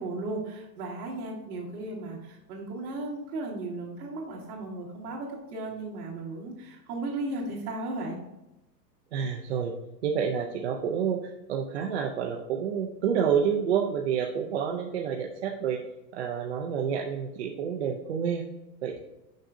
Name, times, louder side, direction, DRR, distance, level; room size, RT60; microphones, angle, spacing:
voice 1, 0.0-8.2, right 2 dB, 60° right, -3 dB, 2.3 m, -35 dB
voice 2, 9.1-9.7 10.0-15.8 16.1-18.4 18.8-19.0, right 7 dB, 45° right, 1 dB, 0.5 m, -29 dB
6.4 x 5.9 x 2.6 m, 0.92 s
supercardioid pair, 175°, 49 cm